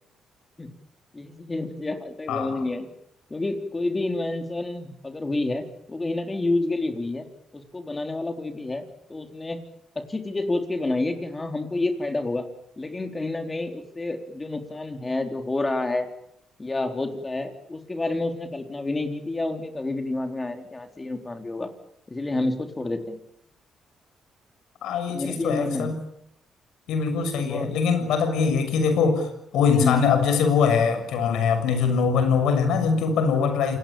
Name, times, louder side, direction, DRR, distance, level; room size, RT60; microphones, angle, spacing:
voice 1, 1.1-2.9 3.3-7.2 7.5-9.6 10.0-12.4 12.8-16.1 16.6-21.7 22.1-23.2 25.1-25.9 27.4-27.7 29.7-30.1, left 2 dB, 20° left, 6 dB, 4.1 m, -29 dB
voice 2, 2.3-2.6 24.8-26.0 26.9-33.8, left 6 dB, 85° left, 8 dB, 6.6 m, -22 dB
28.0 x 19.5 x 8.9 m, 0.75 s
cardioid pair, 90°, 0 cm